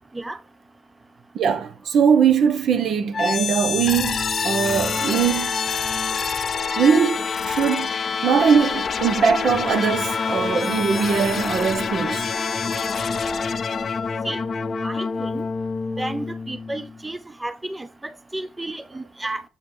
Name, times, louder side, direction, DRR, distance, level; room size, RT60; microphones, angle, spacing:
voice 1, 1.3-5.5 6.8-7.9 8.2-12.3, right 6 dB, 65° right, 0.8 m, -21 dB
sound 1, 3.1-17.0, left 5 dB, 45° left, 0.5 m, -26 dB
voice 2, 14.8-15.4 16.0-19.4, right 2 dB, 15° right, 0.4 m, -32 dB
7.2 x 4.3 x 3.3 m
cardioid pair, 105°, 0 cm